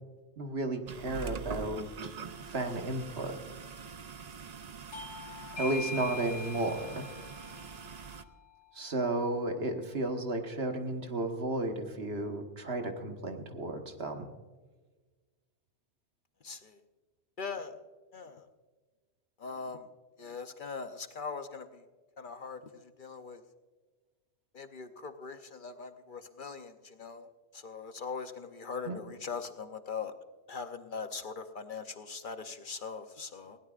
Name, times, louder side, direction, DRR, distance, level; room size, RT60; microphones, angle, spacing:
voice 1, 0.4-2.2 2.5-3.4 5.6-7.1 8.8-14.3 28.9-29.0, right 2 dB, 65° right, 4 dB, 1.6 m, -33 dB
sound 1, 0.9-8.2, right 6 dB, 45° right, 0.6 m, -44 dB
Bell / Doorbell, 4.9-10.0, left 4 dB, 85° left, 2.8 m, -44 dB
voice 2, 16.4-16.8 17.4-17.8 18.1-18.5 19.4-19.9 20.2-21.8 22.2-23.4 24.5-27.3 27.5-30.1 30.5-33.6, left 5 dB, 50° left, 8 dB, 0.9 m, -41 dB
20.0 x 16.5 x 2.5 m, 1.3 s
omnidirectional pair, 1.1 m